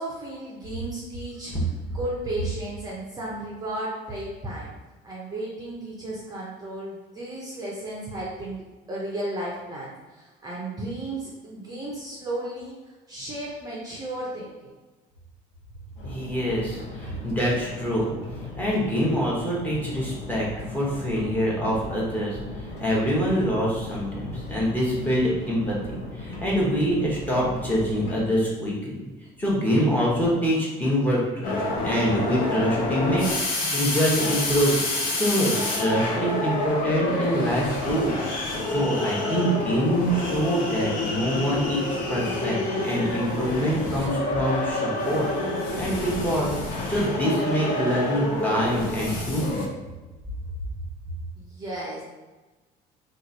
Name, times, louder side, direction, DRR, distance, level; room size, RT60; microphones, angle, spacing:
voice 1, 0.0-4.7 5.0-12.8 13.1-14.7 51.4-52.0, right 1 dB, 20° right, -5 dB, 0.6 m, -34 dB
sound 1, 15.9-28.2, left 2 dB, 70° left, 1.4 m, -38 dB
voice 2, 16.0-18.1 18.6-28.9 29.4-34.8 35.1-45.3 45.8-49.6, equal, 10° left, -6 dB, 1.0 m, -25 dB
sound 2, 31.4-49.7, left 2 dB, 50° left, 0.7 m, -28 dB
3.0 x 2.4 x 3.9 m, 1.2 s
cardioid pair, 150°, 18 cm